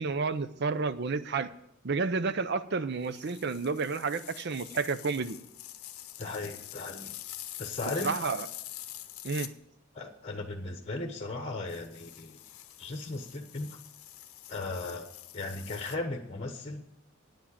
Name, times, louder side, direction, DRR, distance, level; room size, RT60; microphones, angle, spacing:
voice 1, 0.0-1.5 1.8-5.4 8.0-8.5 9.2-9.5, right 4 dB, 50° right, 0.6 m, -30 dB
sound 1, 3.0-9.5 11.7-16.0, left 13 dB, 85° left, 0.7 m, -45 dB
voice 2, 6.2-7.2 7.6-8.2 9.9-12.4 12.8-13.8 14.5-15.1 15.3-16.8, left 2 dB, 30° left, 1.0 m, -37 dB
9.3 x 7.3 x 8.7 m
head